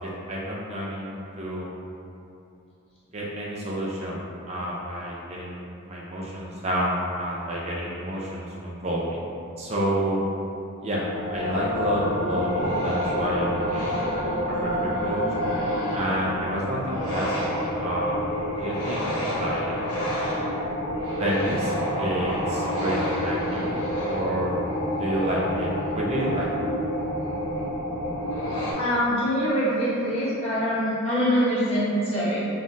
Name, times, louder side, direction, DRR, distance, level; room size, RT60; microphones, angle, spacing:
voice 1, 0.0-1.7 3.1-5.6 5.9-9.2 9.6-10.2 10.8-14.0 14.5-15.2 15.9-18.2 18.6-19.8 21.2-21.7 22.0-24.6 25.0-26.5, equal, 30° right, -5 dB, 0.4 m, -29 dB
sound 1, 11.1-28.7, equal, 75° left, 0.9 m, -28 dB
voice 2, 28.7-32.5, equal, 25° left, -11 dB, 1.0 m, -24 dB
5.5 x 2.4 x 2.5 m, 2.7 s
head